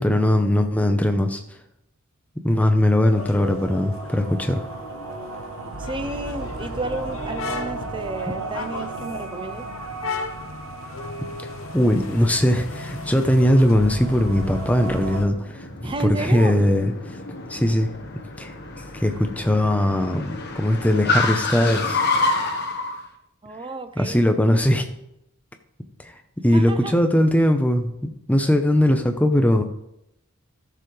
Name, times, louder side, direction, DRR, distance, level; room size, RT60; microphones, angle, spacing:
voice 1, 0.0-1.4 2.4-4.7 11.7-16.9 17.5-17.9 18.4-18.5 18.9-22.0 24.0-24.8 26.4-29.6, left 1 dB, 5° left, 6 dB, 0.8 m, -20 dB
sound 1, 3.0-15.2, right 3 dB, 85° right, 1.2 m, -35 dB
sound 2, 3.1-15.3, left 4 dB, 65° left, 0.8 m, -36 dB
voice 2, 5.8-9.7 15.8-16.6 23.4-24.2 26.5-27.0, right 2 dB, 25° right, 9 dB, 0.6 m, -31 dB
Car, 14.1-23.0, left 3 dB, 50° left, 1.4 m, -28 dB
14.0 x 7.0 x 3.3 m, 0.81 s
head